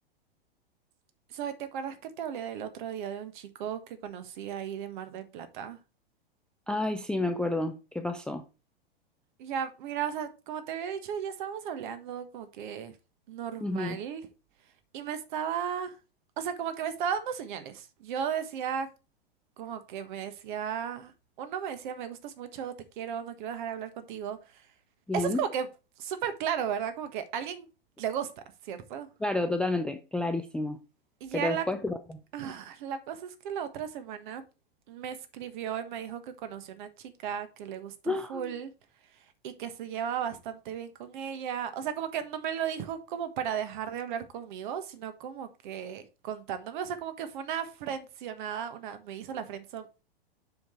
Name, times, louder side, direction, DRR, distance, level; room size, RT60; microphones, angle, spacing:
voice 1, 1.3-5.8 9.4-12.9 13.3-14.3 14.9-15.9 16.4-18.9 19.6-21.1 21.4-24.6 25.1-25.7 26.0-27.7 28.0-29.1 31.2-31.7 32.3-34.4 34.9-38.7 39.4-50.0, right 8 dB, 50° right, 1.4 m, -35 dB
voice 2, 6.7-8.4 13.6-14.0 25.1-25.4 29.2-30.8 31.3-32.2 38.1-38.5, left 2 dB, 5° left, 0.4 m, -30 dB
7.0 x 5.1 x 4.4 m
figure-of-eight pair, 105°, 31 cm